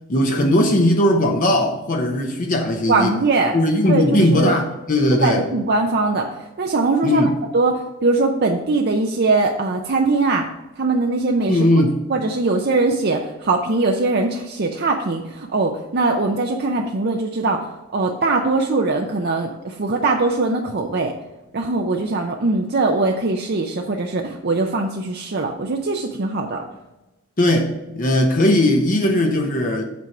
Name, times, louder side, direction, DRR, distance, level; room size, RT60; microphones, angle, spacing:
voice 1, 0.1-3.2 3.5-5.4 7.0-7.4 11.5-12.0 27.4-29.8, left 1 dB, 35° left, 0.8 m, -18 dB
voice 2, 2.9-3.6 3.9-4.6 5.2-6.3 6.6-7.2 7.5-10.4 10.8-11.7 12.1-17.7 17.9-21.1 21.5-26.7, right 3 dB, 45° right, 0.6 m, -21 dB
8.3 x 4.6 x 5.9 m
head